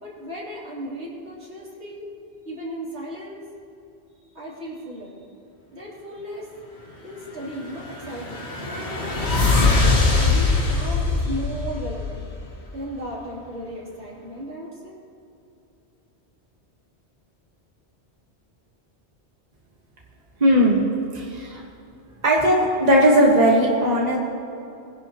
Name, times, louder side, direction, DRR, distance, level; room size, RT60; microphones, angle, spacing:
voice 1, 0.0-2.1 2.4-3.4 4.4-5.2 5.7-6.5 7.0-9.1 10.2-12.3 12.7-15.0, equal, 75° right, -6 dB, 3.5 m, -35 dB
sound 1, 7.6-12.6, left 3 dB, 70° left, 2.0 m, -22 dB
voice 2, 20.4-20.8 21.1-21.6 22.2-24.2, equal, 35° right, -3 dB, 1.6 m, -17 dB
21.5 x 11.0 x 3.0 m, 2.8 s
omnidirectional pair, 1.2 m